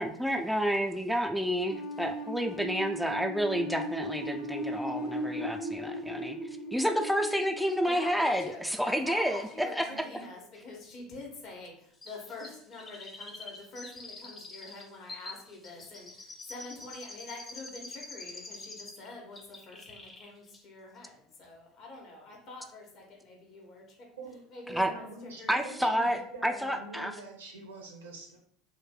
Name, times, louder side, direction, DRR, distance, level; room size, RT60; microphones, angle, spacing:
voice 1, 0.0-6.4 6.7-10.0 24.7-24.9 25.5-27.1, equal, ahead, 5 dB, 0.3 m, -30 dB
sound 1, 1.7-8.5, equal, 85° left, 1.2 m, -37 dB
voice 2, 7.8-8.6 8.8-24.1 24.5-25.9, left 2 dB, 55° left, -1 dB, 1.1 m, -46 dB
voice 3, 9.9-10.3 24.2-24.4 24.8-28.4, right 2 dB, 80° right, 1 dB, 0.7 m, -45 dB
Chirp tweet, 12.0-19.1 19.3-20.3 20.5-20.6, left 2 dB, 25° left, 0.8 m, -46 dB
3.2 x 2.1 x 3.7 m, 0.66 s
hypercardioid pair, 70°, 0 cm